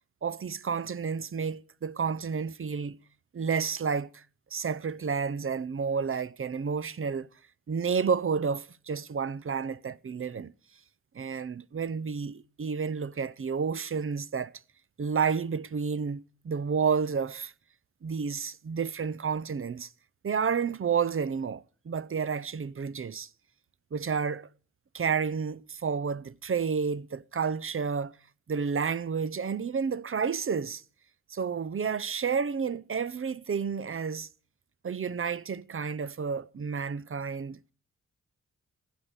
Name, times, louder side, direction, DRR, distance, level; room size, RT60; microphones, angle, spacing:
voice 1, 0.2-3.0 3.3-4.2 4.5-7.3 7.7-10.5 11.1-14.5 15.0-17.5 18.0-19.9 20.2-23.3 23.9-24.5 24.9-28.2 28.5-30.8 31.3-34.3 34.8-37.6, right 6 dB, 45° right, 0.7 m, -30 dB
16.5 x 10.5 x 8.0 m
wide cardioid pair, 90°, 31 cm